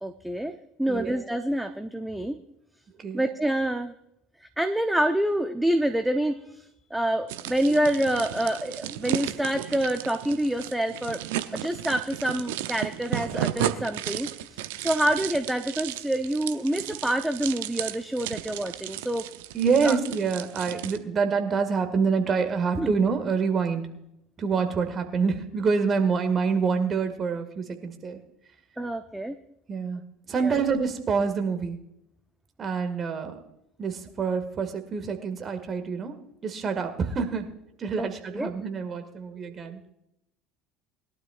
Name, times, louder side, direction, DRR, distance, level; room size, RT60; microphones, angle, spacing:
voice 1, 0.0-2.4 3.1-3.9 4.4-11.2 11.5-19.3 19.8-20.0 22.8-22.9 28.8-29.4 30.4-30.6 38.0-38.1 38.3-38.5, right 1 dB, 5° right, 8 dB, 0.7 m, -27 dB
sound 1, 7.3-21.0, right 13 dB, 60° right, 0.7 m, -34 dB
voice 2, 19.5-23.9 24.4-28.2 29.7-30.0 30.3-31.8 32.6-33.4 33.8-36.2 36.4-37.5 37.8-39.8, right 5 dB, 30° right, 7 dB, 2.0 m, -26 dB
21.5 x 12.0 x 2.5 m, 0.82 s
figure-of-eight pair, 65°, 0 cm